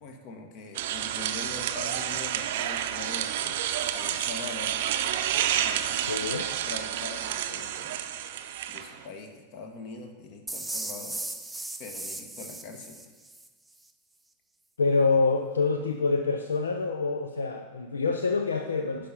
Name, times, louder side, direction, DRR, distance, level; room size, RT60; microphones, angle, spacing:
voice 1, 0.0-4.8 5.3-8.1 8.7-11.2 11.8-13.1, left 3 dB, 45° left, 5 dB, 1.4 m, -43 dB
sound 1, 0.7-9.0, right 10 dB, 55° right, 0.6 m, -30 dB
voice 2, 6.1-6.4 14.8-19.1, left 4 dB, 70° left, 5 dB, 0.5 m, -26 dB
sound 2, 10.5-13.5, right 2 dB, 5° right, 0.5 m, -37 dB
10.5 x 5.2 x 6.9 m, 1.4 s
figure-of-eight pair, 90°, 0 cm